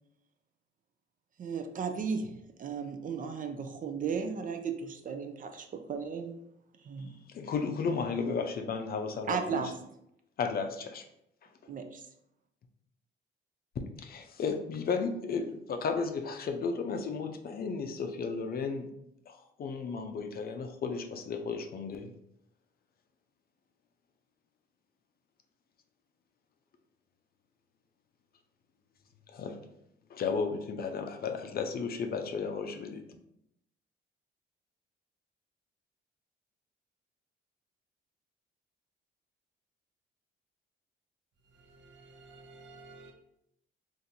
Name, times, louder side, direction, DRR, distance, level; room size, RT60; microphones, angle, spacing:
voice 1, 1.4-2.3 2.6-6.4 6.8-7.2 7.9-8.0 9.2-9.7 11.7-12.0, right 5 dB, 45° right, 0.4 m, -35 dB
voice 2, 7.3-9.6 10.4-11.0 11.6-11.7 14.0-18.9 19.3-22.1 29.3-29.6 30.1-33.0, left 5 dB, 50° left, 0.5 m, -34 dB
voice 3, 41.5-43.1, right 3 dB, 65° right, 0.8 m, -53 dB
3.8 x 2.5 x 2.8 m
cardioid pair, 90°, 20 cm